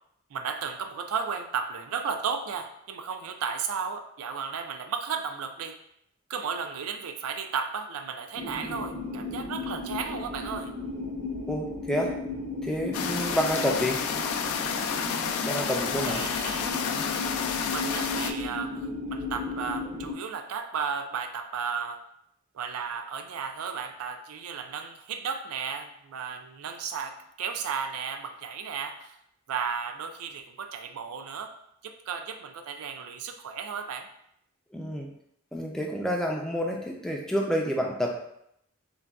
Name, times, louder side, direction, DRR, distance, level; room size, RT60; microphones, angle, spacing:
voice 1, 0.3-5.8 6.3-10.7 16.0-16.6 17.7-22.0 22.5-29.1 29.5-31.5 31.8-34.1, right 6 dB, 90° right, 6 dB, 0.4 m, -34 dB
sound 1, 8.3-20.1, left 2 dB, 35° right, 0.7 m, -35 dB
voice 2, 11.5-12.2 12.6-14.1 15.4-16.3 34.7-35.1 35.5-38.3, equal, 5° left, -1 dB, 0.3 m, -29 dB
sound 2, 12.9-18.3, left 6 dB, 85° left, 0.3 m, -30 dB
3.9 x 2.2 x 2.3 m, 0.75 s
head